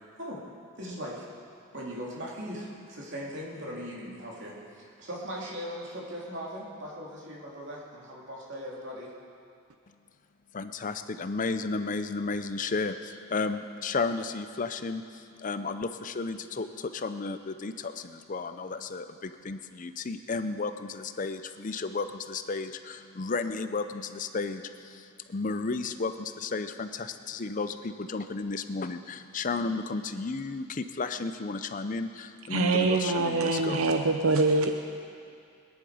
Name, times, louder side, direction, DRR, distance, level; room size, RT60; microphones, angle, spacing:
voice 1, 0.8-1.3 1.7-9.1, equal, 55° right, -4 dB, 2.9 m, -39 dB
voice 2, 10.5-33.8, left 3 dB, 40° left, 10 dB, 0.5 m, -33 dB
voice 3, 32.5-34.7, right 3 dB, 85° right, 5 dB, 0.7 m, -24 dB
21.5 x 10.5 x 5.0 m, 2.4 s
head